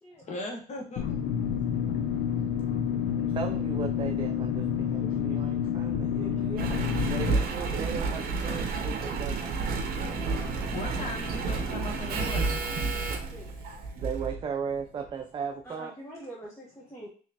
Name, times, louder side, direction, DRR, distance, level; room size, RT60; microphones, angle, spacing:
voice 1, 0.2-1.2 10.2-12.6, left 2 dB, 45° left, 1 dB, 1.2 m, -39 dB
sound 1, 1.0-7.3, left 8 dB, 65° left, 0.6 m, -29 dB
voice 2, 3.1-9.6 13.6-15.9, right 6 dB, 30° right, 6 dB, 0.4 m, -37 dB
voice 3, 6.3-6.8 7.5-8.2 12.7-13.5 15.6-17.1, right 1 dB, 15° left, -4 dB, 1.1 m, -46 dB
Engine, 6.6-14.4 15.0-15.1, right 4 dB, 60° right, 0.7 m, -31 dB
sound 2, 10.1-15.6, left 3 dB, 80° left, 1.1 m, -46 dB
4.1 x 3.1 x 2.8 m, 0.41 s
cardioid pair, 110°, 17 cm